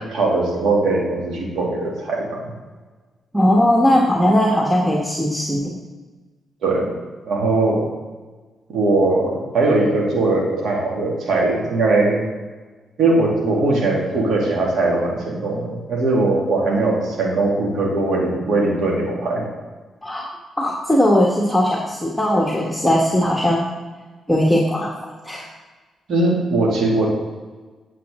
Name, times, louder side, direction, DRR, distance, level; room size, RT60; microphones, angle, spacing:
voice 1, 0.1-2.5 6.6-6.9 7.3-7.9 8.7-12.3 13.0-19.4 26.1-27.1, right 2 dB, 60° right, -2 dB, 2.5 m, -20 dB
voice 2, 3.3-5.8 20.0-23.7 24.3-24.9 25.2-25.5, equal, 5° left, -1 dB, 1.5 m, -18 dB
9.2 x 7.4 x 3.8 m, 1.3 s
hypercardioid pair, 40°, 0 cm